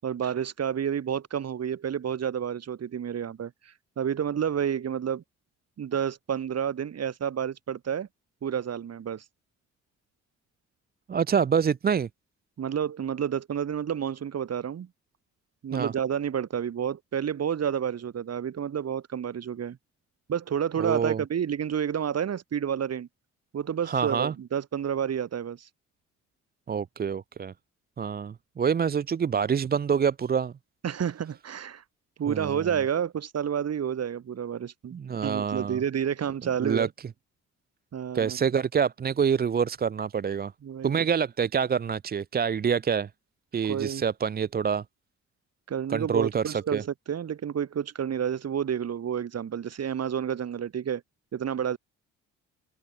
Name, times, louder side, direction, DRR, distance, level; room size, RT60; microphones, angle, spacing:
voice 1, 0.0-5.2 5.8-8.1 8.4-9.2 12.6-14.9 15.6-19.8 20.3-23.1 23.5-25.7 30.8-31.8 32.2-36.9 37.9-38.4 40.6-41.1 43.6-44.1 45.7-51.0 51.3-51.8, right 8 dB, 55° right, 7.1 m, -30 dB
voice 2, 11.1-12.1 15.7-15.9 20.8-21.2 23.8-24.3 26.7-27.5 28.0-30.5 32.3-32.7 34.9-35.8 36.6-36.9 38.1-40.5 40.8-43.1 43.5-44.8 45.9-46.8, right 7 dB, 30° right, 0.6 m, -26 dB
open air
cardioid pair, 90°, 30 cm